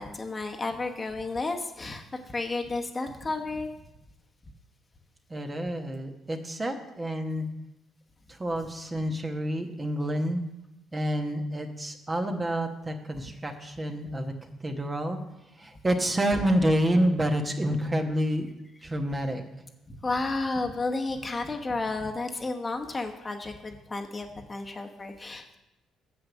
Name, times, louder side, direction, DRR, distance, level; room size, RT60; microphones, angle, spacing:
voice 1, 0.0-3.7 19.9-25.6, left 3 dB, 30° left, 4 dB, 1.1 m, -32 dB
voice 2, 5.3-7.5 8.3-10.4 10.9-15.2 15.6-18.5 18.8-19.4, equal, 25° right, 4 dB, 1.2 m, -28 dB
7.3 x 6.2 x 6.2 m, 0.92 s
supercardioid pair, 65°, 0 cm